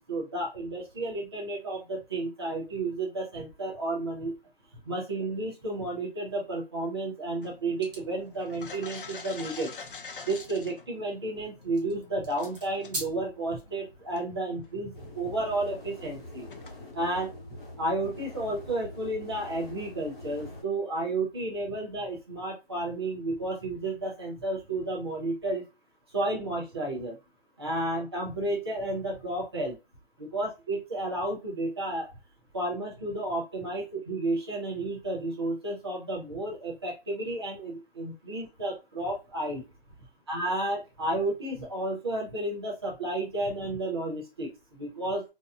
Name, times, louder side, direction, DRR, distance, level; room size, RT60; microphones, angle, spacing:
voice 1, 0.0-4.3 4.9-9.7 10.3-16.5 16.9-17.3 17.8-25.6 26.1-27.1 27.6-29.8 30.2-32.1 32.5-39.7 40.3-45.2, right 2 dB, 25° right, -2 dB, 0.6 m, -32 dB
sound 1, 7.4-17.2, left 5 dB, 60° left, 0.5 m, -47 dB
sound 2, 7.8-8.0 8.7-8.8 9.8-13.6, right 2 dB, 40° right, 1.0 m, -41 dB
sound 3, 14.9-20.6, left 2 dB, 25° left, 1.2 m, -44 dB
2.8 x 2.2 x 2.3 m, 0.25 s
figure-of-eight pair, 165°, 31 cm